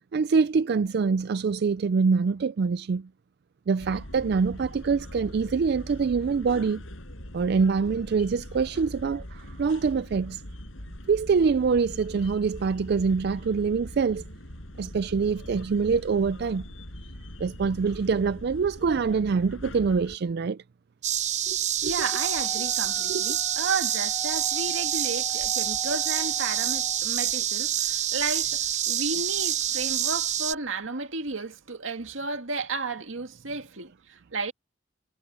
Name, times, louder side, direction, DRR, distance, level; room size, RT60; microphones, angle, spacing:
voice 1, 0.1-3.1 3.7-6.8 7.3-10.4 11.1-14.2 14.8-16.6 17.4-20.6 21.5-21.6 21.8-21.9 23.1-23.3, right 5 dB, 55° right, 0.4 m, -25 dB
sound 1, 3.8-20.2, left 1 dB, 90° left, 6.1 m, -42 dB
sound 2, 21.0-30.5, right 10 dB, 35° right, 0.8 m, -27 dB
voice 2, 21.8-34.5, right 4 dB, 85° right, 2.0 m, -33 dB
Wind instrument woodwind instrument, 22.0-27.0, left 1 dB, 10° left, 2.6 m, -42 dB
head